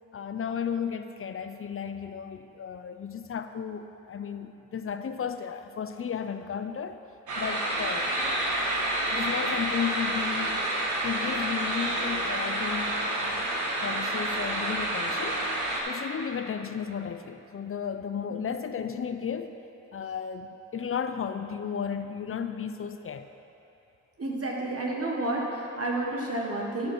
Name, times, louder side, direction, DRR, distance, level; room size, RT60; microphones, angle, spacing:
voice 1, 0.1-7.0 7.3-8.1 9.1-13.5 13.8-15.5 15.9-19.5 19.9-23.3, left 7 dB, 45° left, 9 dB, 0.6 m, -34 dB
sound 1, 7.3-15.8, right 1 dB, 70° right, 1.5 m, -29 dB
voice 2, 24.2-26.9, right 2 dB, 50° right, -2 dB, 1.6 m, -30 dB
10.5 x 6.3 x 4.6 m, 2.9 s
supercardioid pair, 45°, 31 cm